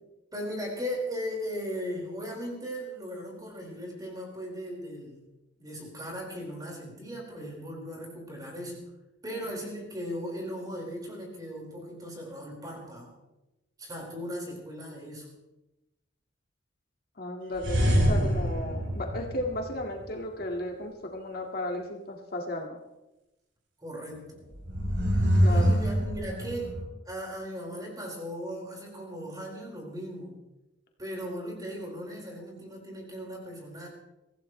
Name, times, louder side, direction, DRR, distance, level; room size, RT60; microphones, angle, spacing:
voice 1, 0.3-5.2 5.6-8.8 9.2-13.2 13.8-15.3 23.8-24.4 25.4-26.7 27.1-30.4 31.0-33.9, equal, 20° right, -2 dB, 4.8 m, -37 dB
voice 2, 17.2-22.8 25.4-25.8, left 1 dB, 50° left, 2 dB, 1.9 m, -34 dB
sound 1, 17.6-20.0 24.5-26.8, equal, 85° right, 4.3 m, -25 dB
24.5 x 15.5 x 3.2 m, 0.97 s
head